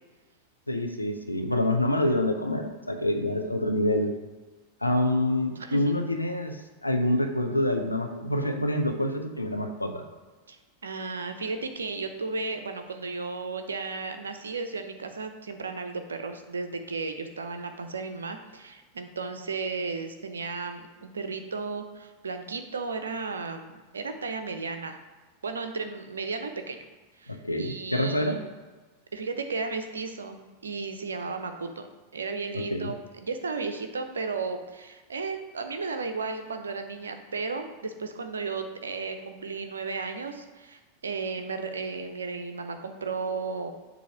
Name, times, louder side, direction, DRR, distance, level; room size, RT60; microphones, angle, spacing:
voice 1, 0.7-4.2 4.8-10.0 27.3-28.4 32.5-32.9, left 1 dB, 85° left, 4 dB, 0.6 m, -27 dB
voice 2, 5.6-5.9 10.5-25.0 25.4-26.8 27.2-28.4 29.1-43.7, right 4 dB, 70° right, 7 dB, 0.6 m, -34 dB
7.1 x 2.8 x 5.7 m, 1.2 s
figure-of-eight pair, 90°, 0 cm